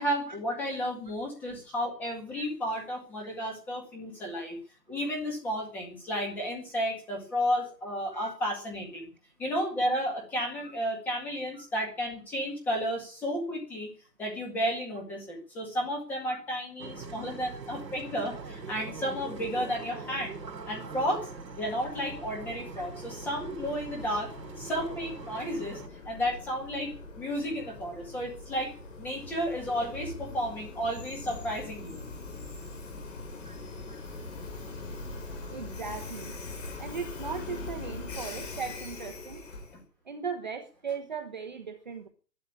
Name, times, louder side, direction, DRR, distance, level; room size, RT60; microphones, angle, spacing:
voice 1, 0.0-4.6 4.9-9.1 9.4-13.9 14.2-20.4 20.7-24.3 24.6-25.8 26.1-28.7 29.0-32.0, equal, 5° left, 0 dB, 1.9 m, -32 dB
sound 1, 16.8-25.9, right 4 dB, 80° right, 3.2 m, -42 dB
Train, 21.2-39.8, left 3 dB, 45° left, 6.2 m, -42 dB
voice 2, 35.5-36.3 36.8-39.4 40.0-42.1, right 6 dB, 30° right, 5 dB, 1.1 m, -38 dB
13.0 x 12.0 x 8.7 m, 0.39 s
hypercardioid pair, 170°, 50 cm